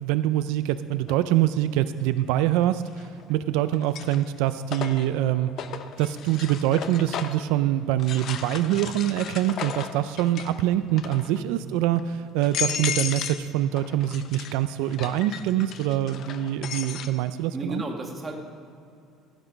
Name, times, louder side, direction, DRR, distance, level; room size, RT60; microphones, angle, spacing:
voice 1, 0.0-5.5 6.0-17.8, right 12 dB, 80° right, 12 dB, 0.4 m, -25 dB
sound 1, 1.1-1.2 2.9-3.3 3.7-7.5 8.0-10.6 10.9-11.4 12.0-12.1 12.4-13.5 13.8-17.1, left 8 dB, 45° left, 0.7 m, -34 dB
voice 2, 17.5-18.3, right 1 dB, 20° right, 2 dB, 1.6 m, -33 dB
15.0 x 8.0 x 5.2 m, 2.5 s
cardioid pair, 150°, 0 cm